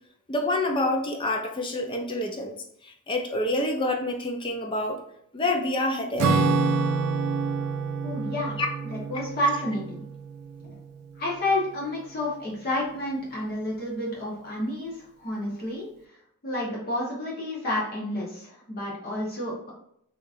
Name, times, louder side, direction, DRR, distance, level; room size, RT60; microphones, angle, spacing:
voice 1, 0.3-2.6 2.8-5.0 5.3-6.3, left 1 dB, 20° left, 2 dB, 0.5 m, -27 dB
Acoustic guitar / Strum, 6.2-11.0, right 4 dB, 85° right, 0.4 m, -27 dB
voice 2, 8.0-8.6 8.9-10.0 10.6-10.7 11.2-15.9 16.4-19.7, left 1 dB, 45° left, -4 dB, 1.0 m, -30 dB
3.6 x 2.9 x 2.5 m, 0.70 s
head